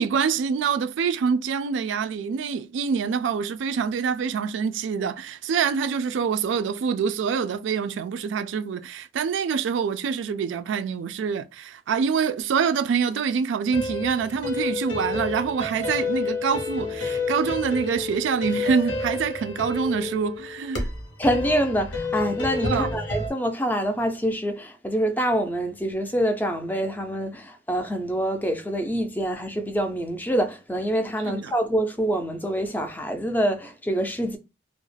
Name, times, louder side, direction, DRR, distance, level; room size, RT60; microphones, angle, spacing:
voice 1, 0.0-20.9 22.6-22.9 31.2-31.5, right 6 dB, 85° right, 0.3 m, -25 dB
sound 1, 13.7-23.3, left 3 dB, 80° left, 0.8 m, -30 dB
voice 2, 21.2-34.4, equal, 10° left, 0.3 m, -26 dB
2.3 x 2.0 x 3.2 m
head